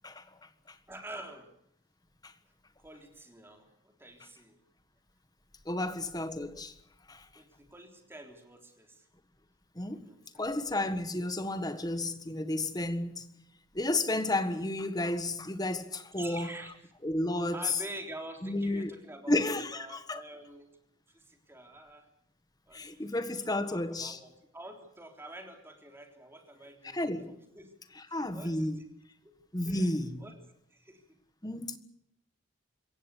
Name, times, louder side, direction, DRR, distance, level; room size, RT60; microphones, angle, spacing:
voice 1, 0.9-1.5 2.8-4.6 5.8-6.0 7.3-9.1 9.9-10.5 16.1-16.9 17.5-20.8 21.1-22.1 22.7-27.7 28.1-28.8 29.2-29.3 29.6-29.9 30.2-30.4 30.7-31.0, right 1 dB, 10° right, 3.5 m, -48 dB
voice 2, 5.6-6.7 7.1-7.2 9.7-10.0 10.4-13.3 13.7-16.5 17.0-17.6 18.4-18.9 19.3-20.2 22.7-24.2 26.9-27.3 28.1-28.8 29.5-30.2 31.4-31.8, left 1 dB, 20° left, 1.5 m, -32 dB
26.5 x 15.5 x 8.4 m
head